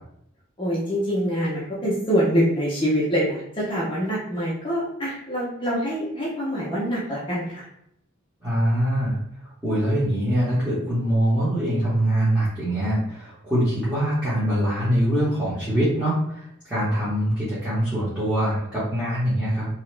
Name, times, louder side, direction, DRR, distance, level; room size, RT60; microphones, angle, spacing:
voice 1, 0.6-7.6, equal, 25° left, -6 dB, 0.6 m, -25 dB
voice 2, 8.4-9.2 9.6-19.7, equal, 5° right, -13 dB, 1.1 m, -23 dB
2.9 x 2.3 x 3.2 m, 0.75 s
head